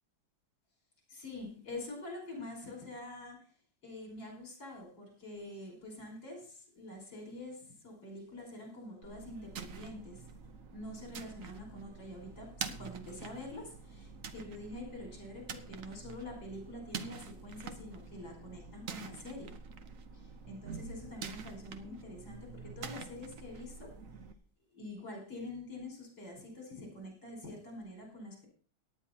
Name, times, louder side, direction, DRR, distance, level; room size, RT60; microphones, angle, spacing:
voice 1, 1.1-3.5 3.8-10.3 10.7-19.6 20.1-23.9 24.7-28.5, left 1 dB, 80° left, 0 dB, 5.9 m, -46 dB
sound 1, 9.0-24.3, right 5 dB, 55° right, 1.1 m, -46 dB
18.0 x 9.9 x 2.8 m, 0.42 s
omnidirectional pair, 2.0 m